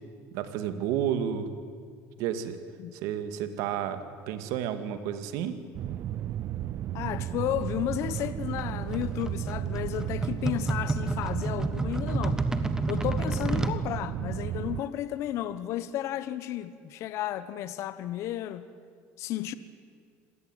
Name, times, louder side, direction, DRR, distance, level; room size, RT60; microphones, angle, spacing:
voice 1, 0.3-1.5 2.2-2.6 3.0-4.0 4.3-5.5, right 9 dB, 75° right, 2.2 m, -31 dB
sound 1, 5.7-14.8, right 11 dB, 50° right, 0.6 m, -33 dB
voice 2, 6.9-12.4 12.9-18.6 19.2-19.5, left 12 dB, 60° left, 1.2 m, -33 dB
sound 2, 8.2-13.8, right 2 dB, 10° right, 1.4 m, -31 dB
26.0 x 18.0 x 9.2 m
cardioid pair, 130°, 6 cm